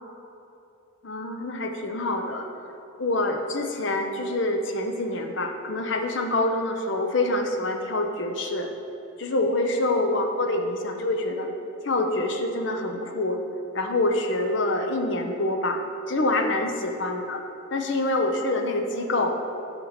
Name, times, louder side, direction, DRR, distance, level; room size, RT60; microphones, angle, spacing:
voice 1, 1.0-2.5 3.0-8.7 9.2-11.5 11.8-13.4 13.7-15.8 16.1-17.4 17.7-19.4, left 2 dB, 60° left, 4 dB, 0.7 m, -26 dB
6.0 x 5.6 x 6.5 m, 2.9 s
head